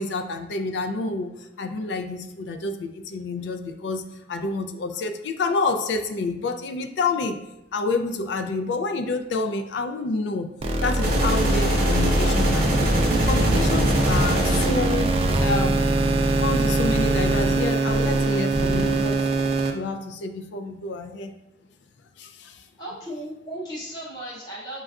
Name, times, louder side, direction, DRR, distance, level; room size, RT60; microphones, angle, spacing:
voice 1, 0.0-7.4 7.7-10.5 10.8-13.0 13.3-15.8 16.4-19.2 19.7-21.3 22.2-22.6, left 3 dB, 70° left, 7 dB, 0.3 m, -28 dB
sound 1, 10.6-19.7, right 2 dB, 30° right, 0.3 m, -22 dB
sound 2, 11.0-15.0, right 1 dB, 55° right, 0.7 m, -25 dB
voice 2, 22.8-24.8, right 1 dB, 25° left, -6 dB, 0.6 m, -35 dB
6.1 x 2.3 x 2.3 m, 0.88 s
head